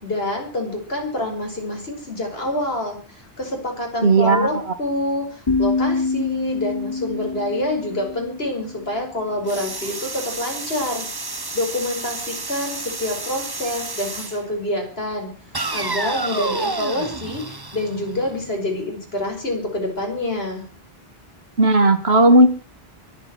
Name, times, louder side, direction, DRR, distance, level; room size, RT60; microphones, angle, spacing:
voice 1, 0.0-11.1 11.5-15.3 15.7-20.7, left 1 dB, 70° left, 2 dB, 5.5 m, -27 dB
voice 2, 4.0-4.5 21.6-22.5, right 2 dB, 80° right, 9 dB, 2.3 m, -14 dB
sound 1, 5.5-9.3, left 3 dB, 25° left, 0.8 m, -26 dB
sound 2, 9.5-14.4 15.5-18.5, right 3 dB, 25° right, 1.1 m, -30 dB
23.0 x 8.2 x 6.0 m, 0.38 s
omnidirectional pair, 1.1 m